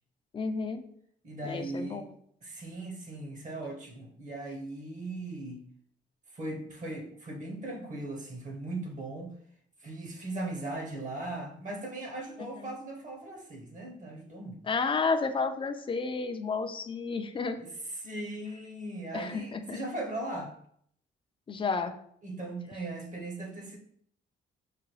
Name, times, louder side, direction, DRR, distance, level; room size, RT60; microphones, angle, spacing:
voice 1, 0.3-0.9 1.4-2.1 12.4-12.7 14.6-17.6 19.1-19.8 21.5-21.9, left 4 dB, 25° left, 8 dB, 0.4 m, -31 dB
voice 2, 1.2-2.0 2.4-5.6 6.3-9.3 9.8-14.6 18.0-20.5 22.2-23.8, right 2 dB, 40° right, 2 dB, 0.9 m, -38 dB
4.8 x 2.2 x 3.1 m, 0.65 s
cardioid pair, 90°, 20 cm